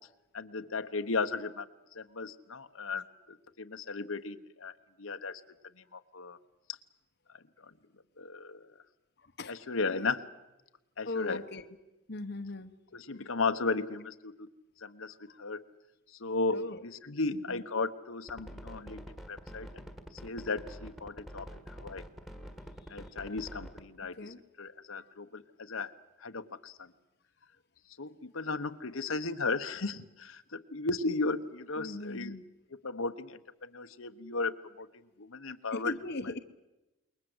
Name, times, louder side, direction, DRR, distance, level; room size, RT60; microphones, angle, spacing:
voice 1, 0.3-1.7 1.9-5.4 5.8-6.4 7.3-7.7 8.2-8.7 9.5-10.2 11.0-11.4 12.9-14.5 14.8-15.6 16.2-19.8 20.2-22.0 22.9-24.2 24.6-25.9 26.2-26.9 28.0-32.3 32.8-35.9, left 3 dB, 75° left, 8 dB, 1.2 m, -35 dB
voice 2, 9.2-9.6 10.0-10.1 11.0-11.7 12.1-13.3 15.3-15.4 16.5-16.8 17.3-17.6 22.8-23.0 24.2-24.4 24.9-25.0 31.8-32.4 35.7-36.4, left 2 dB, 50° left, 8 dB, 1.0 m, -40 dB
sound 1, 18.3-23.8, equal, ahead, 1.7 m, -46 dB
28.0 x 22.0 x 8.0 m, 1.0 s
head